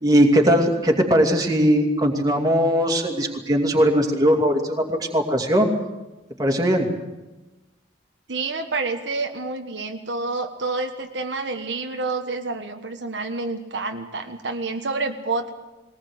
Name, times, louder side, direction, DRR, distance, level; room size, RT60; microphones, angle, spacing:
voice 1, 0.0-5.7 6.4-6.9, equal, 20° right, 2 dB, 2.6 m, -19 dB
voice 2, 8.3-15.5, right 3 dB, 70° right, 5 dB, 1.4 m, -28 dB
21.0 x 19.0 x 8.0 m, 1.1 s
head